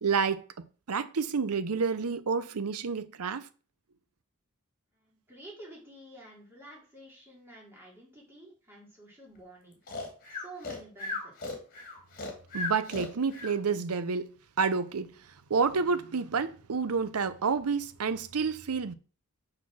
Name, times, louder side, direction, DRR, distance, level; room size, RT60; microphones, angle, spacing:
voice 1, 0.0-3.5 12.5-14.3 14.6-15.1 15.5-18.9, right 5 dB, 85° right, 0.7 m, -29 dB
voice 2, 5.0-9.8 10.3-11.6, right 1 dB, 10° right, 3.1 m, -50 dB
Breathing, 9.9-13.6, left 2 dB, 40° left, 2.0 m, -37 dB
6.1 x 4.4 x 6.1 m
head